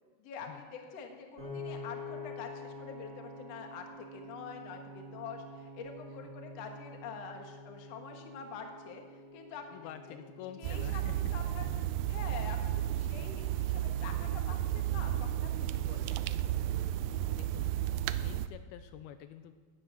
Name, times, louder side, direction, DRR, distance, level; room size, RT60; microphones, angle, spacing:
voice 1, 0.2-9.0 9.3-10.2 10.6-11.0 11.3-11.7 12.1-16.2, left 6 dB, 55° left, 4 dB, 2.1 m, -46 dB
Piano, 1.4-13.6, left 2 dB, 20° right, 1.8 m, -48 dB
voice 2, 9.7-11.2 17.3-17.8 18.2-19.5, left 11 dB, 85° left, 9 dB, 2.4 m, -48 dB
sound 1, 10.6-18.5, right 12 dB, 85° right, 2.0 m, -33 dB
15.5 x 9.7 x 6.2 m, 1.5 s
omnidirectional pair, 4.5 m